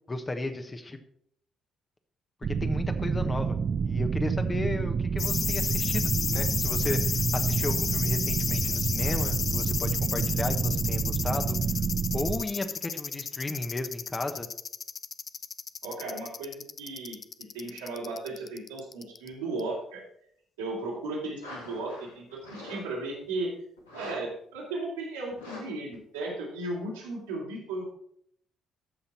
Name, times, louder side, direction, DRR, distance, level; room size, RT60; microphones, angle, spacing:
voice 1, 0.1-1.0 2.6-3.6 3.8-11.6 12.1-14.5, left 2 dB, 25° left, 7 dB, 1.3 m, -34 dB
sound 1, 2.4-12.4, right 6 dB, 45° right, 0.5 m, -29 dB
sound 2, 5.2-19.3 19.6-19.7, left 6 dB, 50° left, 0.5 m, -32 dB
voice 2, 15.8-20.0 20.6-23.5 23.9-28.0, right 2 dB, 85° right, -4 dB, 3.1 m, -35 dB
sound 3, 21.4-22.8 23.1-23.4 23.8-24.2 24.5-24.6 25.3-25.6 25.9-26.0, left 2 dB, 90° left, 1.7 m, -43 dB
14.0 x 5.7 x 4.3 m, 0.68 s
hypercardioid pair, 45°, 0 cm